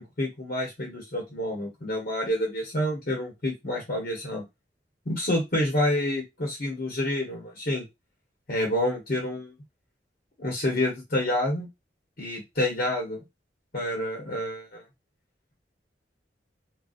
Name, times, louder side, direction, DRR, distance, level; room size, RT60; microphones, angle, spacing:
voice 1, 0.0-4.4 5.1-7.9 8.5-9.5 10.4-11.7 12.2-13.2 13.7-14.8, left 1 dB, 55° left, 0 dB, 1.0 m, -28 dB
4.0 x 2.3 x 2.4 m, 0.22 s
head